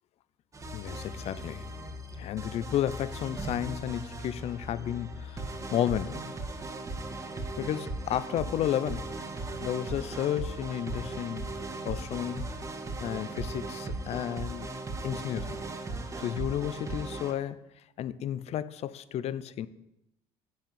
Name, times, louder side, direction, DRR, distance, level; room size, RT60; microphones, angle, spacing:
sound 1, 0.5-17.3, right 2 dB, 25° right, 2.0 m, -38 dB
voice 1, 0.7-1.7 2.2-6.4 7.6-9.1 9.6-11.5 11.8-12.5 13.0-14.7 15.0-15.6 16.2-17.6 18.0-19.7, left 11 dB, 55° left, 0.8 m, -32 dB
10.5 x 7.5 x 9.5 m
supercardioid pair, 100°, 13 cm